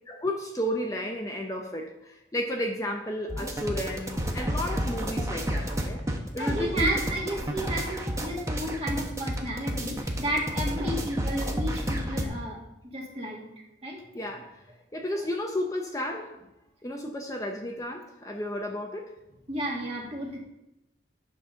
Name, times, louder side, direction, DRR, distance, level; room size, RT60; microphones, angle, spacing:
voice 1, 0.1-6.0 6.3-7.0 14.1-14.7 14.9-16.4 16.8-19.1, left 1 dB, 20° left, 1 dB, 0.6 m, -32 dB
sound 1, 3.3-12.3, equal, 15° right, 0.8 m, -30 dB
voice 2, 6.4-12.6 12.9-13.4 13.8-14.3 15.1-15.2 19.5-20.4, right 1 dB, 35° right, -2 dB, 1.9 m, -32 dB
9.4 x 4.1 x 6.2 m, 0.92 s
head